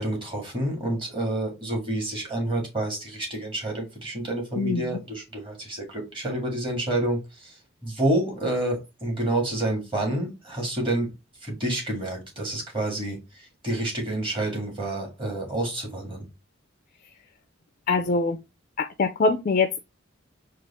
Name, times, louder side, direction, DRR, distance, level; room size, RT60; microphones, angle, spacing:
voice 1, 0.0-7.5 7.8-11.1 11.4-13.2 13.6-16.3, right 1 dB, 25° right, 2.0 m, -28 dB
voice 2, 4.5-5.0 17.9-18.4 18.8-19.8, left 3 dB, 40° left, 0.4 m, -24 dB
4.7 x 2.4 x 4.1 m
head